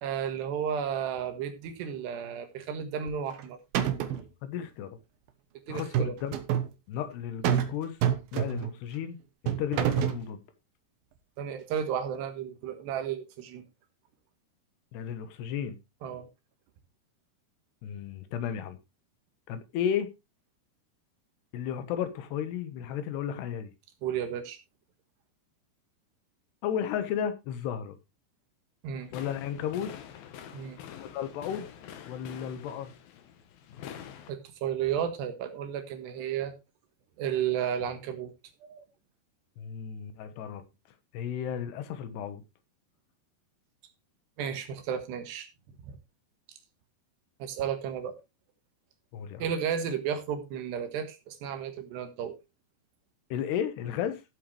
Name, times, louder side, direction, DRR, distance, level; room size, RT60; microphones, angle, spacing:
voice 1, 0.0-3.6 5.7-6.1 11.4-13.6 16.0-16.3 24.0-24.6 28.8-29.1 30.5-30.8 34.3-36.5 37.2-38.3 38.6-38.9 44.4-45.5 45.9-46.0 47.4-48.2 49.4-52.4, right 8 dB, 85° right, 3.8 m, -33 dB
sound 1, 3.1-3.4 3.7-4.3 5.8-6.7 7.4-7.7 8.0-8.8 9.5-10.2, right 10 dB, 70° right, 2.8 m, -27 dB
voice 2, 4.4-5.0 5.7-6.4 6.9-8.0 8.3-9.2 9.4-10.4 14.9-15.8 17.8-18.8 19.5-20.1 21.5-23.7 26.6-28.0 29.1-29.9 31.0-31.7 32.0-32.9 39.6-40.6 41.1-42.4 49.1-49.5 53.3-54.2, left 9 dB, 85° left, 3.3 m, -33 dB
sound 2, 29.0-34.3, left 9 dB, 70° left, 2.9 m, -46 dB
14.5 x 7.9 x 3.2 m
omnidirectional pair, 4.7 m